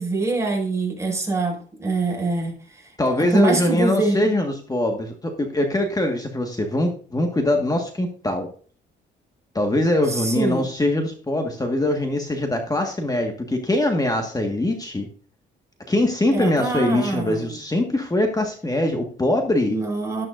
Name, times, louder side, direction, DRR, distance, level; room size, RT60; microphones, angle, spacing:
voice 1, 0.0-4.3 10.1-10.6 16.3-17.6 19.7-20.2, right 3 dB, 15° right, 0 dB, 5.8 m, -25 dB
voice 2, 3.0-8.5 9.5-15.1 15.9-19.8, left 1 dB, 20° left, 4 dB, 1.6 m, -22 dB
12.0 x 10.5 x 2.6 m, 0.43 s
cardioid pair, 90°, 20 cm